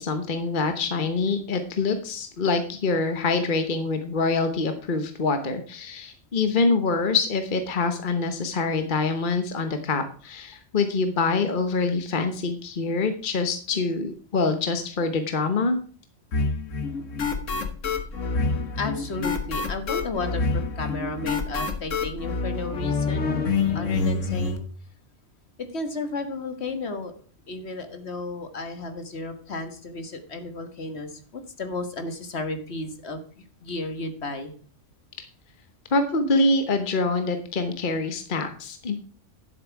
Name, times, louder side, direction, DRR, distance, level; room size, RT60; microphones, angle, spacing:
voice 1, 0.0-15.8 35.9-39.0, left 3 dB, 45° left, 7 dB, 1.2 m, -25 dB
sound 1, 16.3-24.6, left 4 dB, 85° left, 1.6 m, -27 dB
voice 2, 18.8-24.6 25.7-27.1 27.5-34.5, left 3 dB, 60° left, 8 dB, 1.7 m, -33 dB
11.0 x 7.8 x 4.6 m, 0.44 s
omnidirectional pair, 1.3 m